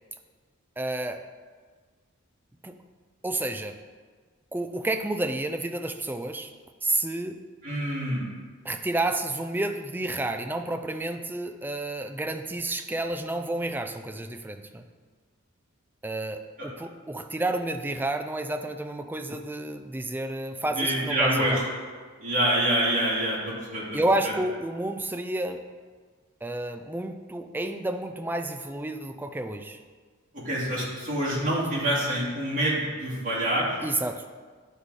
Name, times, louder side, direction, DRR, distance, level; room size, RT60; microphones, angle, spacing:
voice 1, 0.8-1.2 2.6-2.8 3.2-3.8 4.5-6.5 6.8-7.4 8.6-14.8 16.0-21.6 23.9-25.6 26.4-29.8 33.8-34.2, right 2 dB, 10° right, 6 dB, 0.4 m, -30 dB
voice 2, 7.6-8.3 20.7-21.6 22.2-24.3 30.3-33.7, right 1 dB, 40° right, -6 dB, 2.4 m, -26 dB
10.0 x 4.7 x 4.1 m, 1.5 s
head